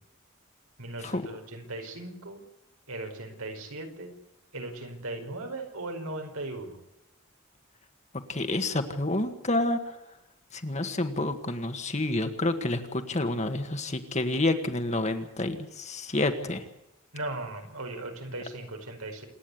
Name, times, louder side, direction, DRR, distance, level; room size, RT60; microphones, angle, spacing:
voice 1, 0.8-2.4 2.9-4.1 4.5-6.8 17.1-19.2, right 2 dB, 85° right, 4 dB, 5.1 m, -38 dB
voice 2, 8.3-10.0 10.5-16.6, left 2 dB, 30° left, 7 dB, 1.8 m, -29 dB
27.5 x 9.9 x 9.8 m, 0.91 s
head